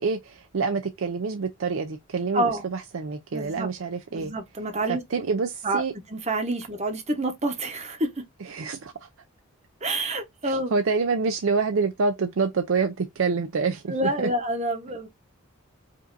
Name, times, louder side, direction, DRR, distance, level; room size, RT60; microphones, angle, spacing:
voice 1, 0.0-4.3 4.9-5.9 8.4-9.1 10.4-14.3, right 4 dB, 65° right, 0.5 m, -27 dB
voice 2, 2.3-2.7 3.3-3.7 4.1-5.0 5.6-5.8 6.1-8.2 9.8-10.7 13.9-15.1, right 1 dB, 30° right, 0.9 m, -28 dB
5.1 x 2.6 x 2.5 m
head